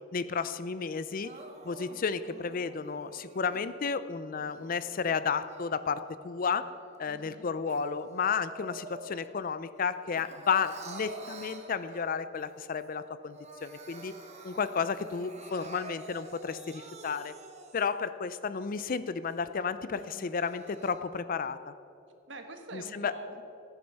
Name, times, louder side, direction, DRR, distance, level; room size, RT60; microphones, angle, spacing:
voice 1, 0.1-1.3 1.6-6.7 7.0-14.1 14.4-17.3 17.7-21.7 22.7-23.1, left 5 dB, 45° left, 13 dB, 0.4 m, -32 dB
Crying sobbing, 1.2-3.7 4.3-6.1 6.5-9.4 9.8-12.4 12.8-12.9 13.2-18.1 18.6-18.7 19.3-19.4 20.1-21.0, right 2 dB, 35° right, 1.2 m, -48 dB
voice 2, 7.1-7.5 19.9-20.4 22.3-23.4, right 2 dB, 65° right, 6 dB, 1.3 m, -46 dB
15.0 x 9.6 x 5.4 m, 2.7 s
head